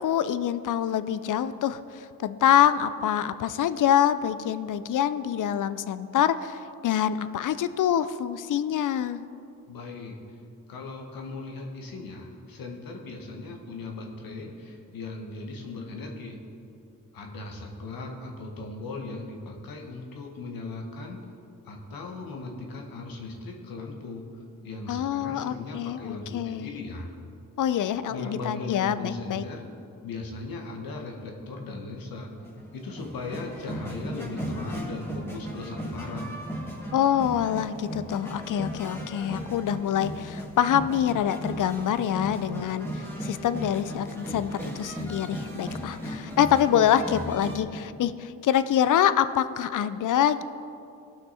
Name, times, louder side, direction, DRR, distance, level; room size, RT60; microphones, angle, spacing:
voice 1, 0.0-9.2 24.9-26.8 27.6-29.4 36.9-50.4, left 10 dB, 65° left, 13 dB, 0.6 m, -25 dB
voice 2, 9.7-10.1 10.7-16.4 17.1-21.2 21.7-24.2 24.6-27.1 28.1-29.6 30.0-32.3 32.7-36.3, left 3 dB, 85° left, 1 dB, 1.6 m, -38 dB
sound 1, 32.4-47.6, right 1 dB, 5° left, 2.2 m, -36 dB
17.5 x 6.1 x 4.2 m, 2.5 s
cardioid pair, 75°, 34 cm